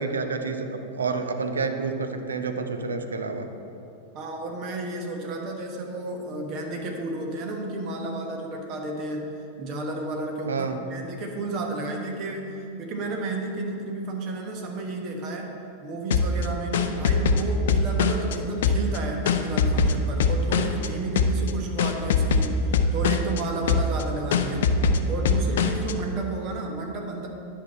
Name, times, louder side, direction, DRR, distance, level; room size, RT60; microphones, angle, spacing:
voice 1, 0.0-3.5 10.5-10.8, right 4 dB, 70° right, 6 dB, 0.6 m, -29 dB
voice 2, 4.1-9.3 9.6-15.5 15.8-24.7 25.0-27.3, right 2 dB, 40° right, 2 dB, 1.1 m, -32 dB
sound 1, 16.1-18.4 18.6-20.9 21.2-21.5 21.8-23.4 23.7-24.0 24.3-25.9, left 4 dB, 60° left, 0.5 m, -22 dB
10.0 x 5.7 x 4.2 m, 2.7 s
figure-of-eight pair, 90°, 0 cm